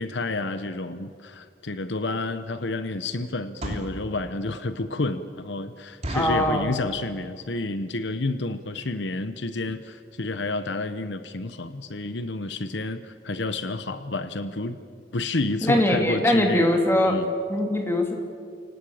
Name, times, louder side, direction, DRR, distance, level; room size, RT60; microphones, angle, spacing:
voice 1, 0.0-14.8 15.1-17.3, left 2 dB, 70° left, 11 dB, 1.0 m, -30 dB
sound 1, 1.8-1.9 2.4-2.7 3.4-4.0 4.6-4.7 5.0-5.1 5.4-5.5 6.0-6.5 7.1-7.4 7.7-7.8 8.0-8.3 8.8-8.9 9.1-9.3 9.7-9.8 10.0-10.1, right 1 dB, 35° right, 3.1 m, -34 dB
voice 2, 6.1-6.7 15.6-17.2 17.5-18.1, left 1 dB, 15° left, 3 dB, 2.8 m, -21 dB
29.0 x 18.5 x 8.7 m, 2.3 s
head